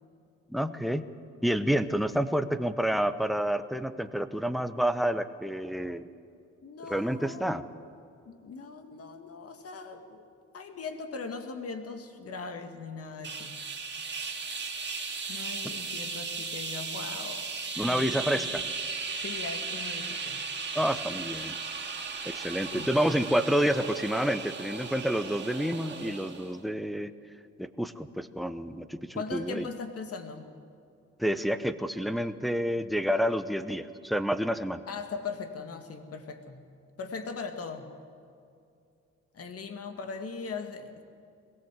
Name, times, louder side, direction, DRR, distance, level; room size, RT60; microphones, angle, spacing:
voice 1, 0.5-1.1 1.4-6.0 6.9-7.6 17.8-18.6 20.7-21.5 22.2-27.1 27.6-29.6 31.2-34.8, equal, ahead, 9 dB, 0.9 m, -29 dB
voice 2, 6.6-7.9 8.3-10.2 10.5-13.5 15.3-18.6 19.2-20.4 22.6-22.9 29.1-30.5 34.9-36.6 37.0-37.9 39.3-41.0, left 4 dB, 50° left, 6 dB, 2.1 m, -40 dB
sound 1, 13.2-26.6, right 4 dB, 35° right, 2.7 m, -36 dB
21.0 x 17.5 x 7.6 m, 2.5 s
cardioid pair, 90°, 30 cm